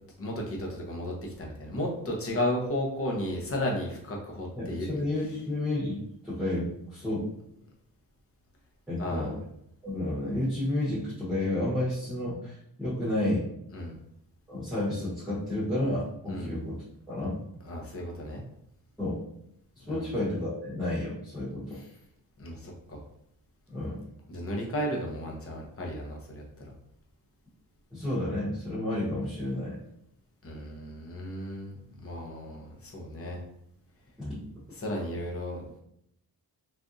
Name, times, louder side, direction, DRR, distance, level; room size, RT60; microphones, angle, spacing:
voice 1, 0.2-5.0 9.0-9.4 13.7-14.0 16.3-16.5 17.6-18.4 19.8-20.0 21.7-21.8 22.4-23.0 24.3-26.7 30.4-33.4 34.7-35.7, left 1 dB, 35° left, -1 dB, 0.8 m, -34 dB
voice 2, 4.5-7.3 8.9-9.3 9.8-13.5 14.5-17.4 19.0-19.2 19.8-21.8 23.7-24.0 27.9-29.8 34.2-34.5, left 1 dB, ahead, -10 dB, 1.0 m, -31 dB
3.5 x 2.6 x 2.6 m, 0.76 s
wide cardioid pair, 140°, 38 cm